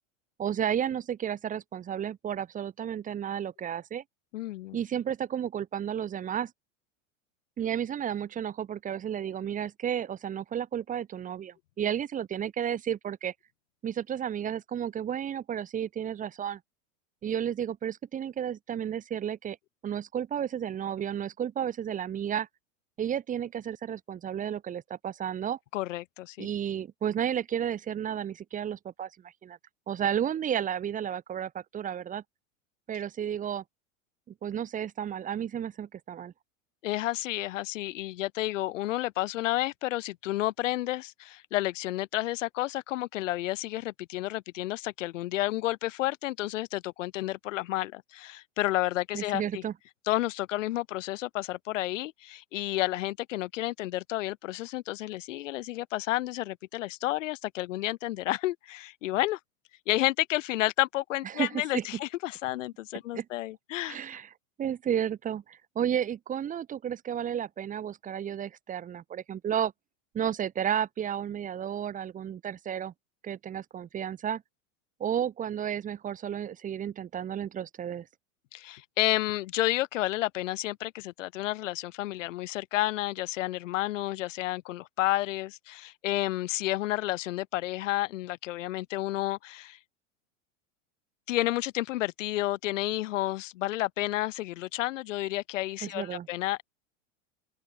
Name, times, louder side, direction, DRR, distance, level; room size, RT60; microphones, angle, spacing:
voice 1, 0.4-4.0 4.7-6.5 7.6-13.3 13.8-16.6 17.2-19.6 19.8-22.5 23.0-25.6 26.4-29.1 29.4-29.6 29.9-32.2 32.9-33.6 34.3-36.3 49.1-49.7 61.2-61.8 63.1-63.3 63.8-64.3 64.6-69.7 70.1-72.9 73.2-74.4 75.0-78.1 95.8-96.3, right 9 dB, 20° right, 0.7 m, -32 dB
voice 2, 4.3-4.8 25.7-26.5 36.8-49.6 50.1-59.4 59.9-64.0 78.5-89.8 91.3-96.6, left 16 dB, 70° left, 1.6 m, -31 dB
open air
hypercardioid pair, 105°, 39 cm